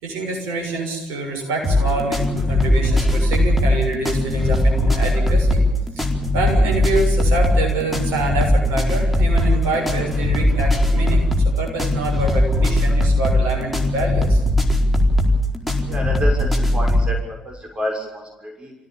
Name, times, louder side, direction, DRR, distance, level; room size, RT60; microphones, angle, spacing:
voice 1, 0.0-5.6 5.9-6.1 6.3-11.2 11.6-14.4, right 2 dB, 65° right, 1 dB, 6.6 m, -25 dB
sound 1, 1.6-17.1, left 1 dB, ahead, 4.5 m, -19 dB
voice 2, 15.9-17.2 17.4-18.7, left 1 dB, 25° right, 1 dB, 6.8 m, -29 dB
26.0 x 17.0 x 7.4 m, 1.0 s
figure-of-eight pair, 50°, 4 cm